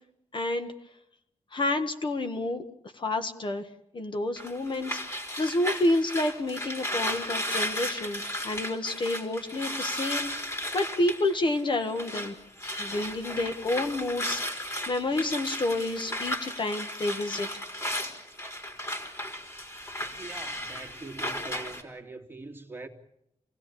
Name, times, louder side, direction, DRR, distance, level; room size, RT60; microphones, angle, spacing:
voice 1, 0.3-0.7 1.5-2.6 3.0-3.6 3.9-10.3 10.7-12.3 12.8-17.5, left 2 dB, 45° left, 1.7 m, -29 dB
sound 1, 4.4-12.3 12.6-21.8, left 1 dB, 25° left, 4.0 m, -35 dB
voice 2, 20.2-22.9, right 3 dB, 20° right, 2.6 m, -43 dB
28.0 x 17.5 x 8.7 m
wide cardioid pair, 150°, 12 cm